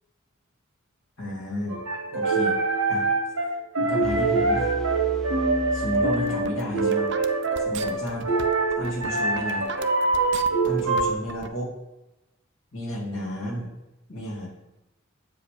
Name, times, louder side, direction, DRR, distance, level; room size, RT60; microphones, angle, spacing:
voice 1, 1.2-1.8 2.1-2.6 2.9-3.1 3.8-4.7 5.7-7.1 7.6-8.3 8.8-9.7 10.6-11.7 12.7-13.7 14.1-14.5, equal, 80° left, -2 dB, 2.3 m, -32 dB
sound 1, 1.7-11.1, right 3 dB, 80° right, 1.7 m, -24 dB
sound 2, 4.0-6.9, equal, ahead, 0.8 m, -36 dB
sound 3, 5.9-11.5, right 5 dB, 60° right, 0.5 m, -38 dB
7.5 x 4.9 x 5.0 m, 0.98 s
head